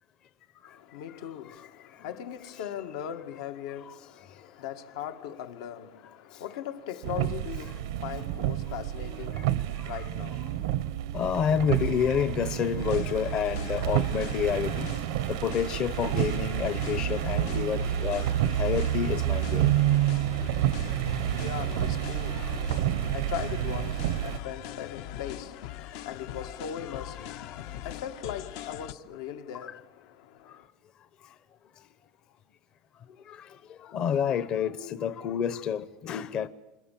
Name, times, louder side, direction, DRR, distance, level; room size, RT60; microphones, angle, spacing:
voice 1, 0.6-10.8 20.6-30.7, left 10 dB, 85° left, 1.9 m, -40 dB
sound 1, 7.0-24.4, right 12 dB, 85° right, 1.0 m, -29 dB
voice 2, 11.1-14.9 15.3-18.3 18.6-19.7 22.2-22.5 25.8-25.9 26.4-26.5 27.4-27.6 29.6-29.7 33.3-33.5 33.8-36.5, left 8 dB, 35° left, 0.9 m, -29 dB
sound 2, 12.8-28.9, left 12 dB, 65° left, 0.9 m, -42 dB
27.5 x 27.0 x 7.6 m
cardioid pair, 165°, 2 cm